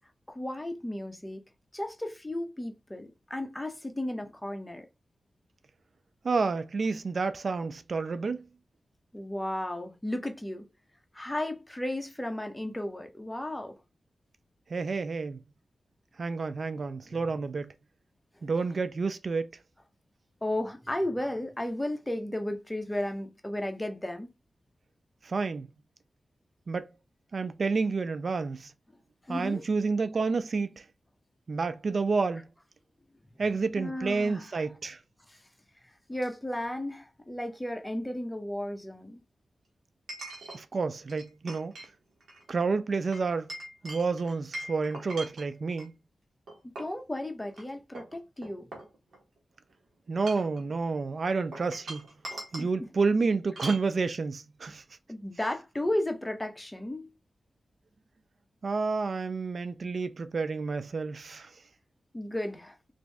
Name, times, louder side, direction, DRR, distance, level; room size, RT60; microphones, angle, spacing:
voice 1, 0.3-1.4 1.7-4.9 9.1-10.7 11.1-13.8 17.0-17.3 20.4-24.3 29.3-29.6 33.8-34.5 35.3-35.4 36.1-39.2 46.8-48.7 52.3-52.9 55.1-57.1 62.1-62.8, left 1 dB, 15° left, 0.8 m, -34 dB
voice 2, 6.2-8.4 14.7-15.4 16.2-17.7 18.4-19.5 25.2-25.7 26.7-26.9 27.3-28.7 29.3-30.8 31.5-32.5 33.4-35.0 40.5-41.7 42.5-43.5 43.8-45.9 50.1-52.1 52.5-54.8 58.6-61.5, right 4 dB, 60° right, 0.3 m, -29 dB
Chink clink, 36.6-36.7 40.1-40.6 41.1-41.9 42.2-42.4 43.1-45.9 46.5-47.0 47.5-47.6 48.0-49.4 50.1-50.6 51.5-52.7 53.6-53.9, right 1 dB, 85° right, 1.3 m, -42 dB
3.0 x 2.6 x 3.4 m
cardioid pair, 55°, 0 cm